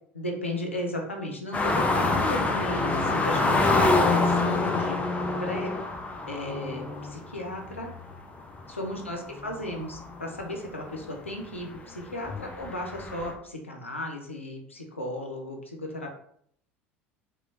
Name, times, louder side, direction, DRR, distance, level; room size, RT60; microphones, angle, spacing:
voice 1, 0.1-5.0 5.4-5.7 6.3-7.9 8.7-16.1, left 1 dB, 90° left, 1 dB, 0.5 m, -35 dB
sound 1, 1.5-10.6 11.0-11.1 11.6-13.3, left 3 dB, 20° left, 0.4 m, -26 dB
3.0 x 2.1 x 2.4 m, 0.66 s
figure-of-eight pair, 70°, 7 cm